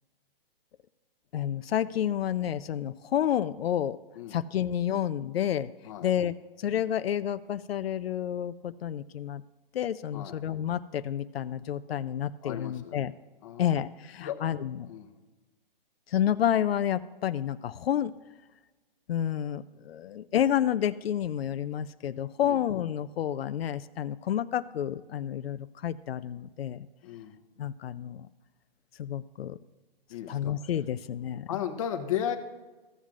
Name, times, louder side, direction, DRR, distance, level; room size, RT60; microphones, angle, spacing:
voice 1, 1.3-4.0 4.3-5.7 6.0-9.4 9.7-13.1 13.6-14.9 16.1-18.1 19.1-26.9 27.6-28.3 29.0-29.6 30.3-31.5, left 10 dB, 85° left, 13 dB, 0.4 m, -30 dB
voice 2, 12.4-13.0 13.4-13.8 14.2-14.4 14.9-15.1 22.4-22.6 27.0-27.4 30.1-30.5 31.5-32.4, left 10 dB, 35° left, 6 dB, 0.9 m, -35 dB
14.5 x 7.3 x 2.4 m, 1.2 s
hypercardioid pair, 160°, 29 cm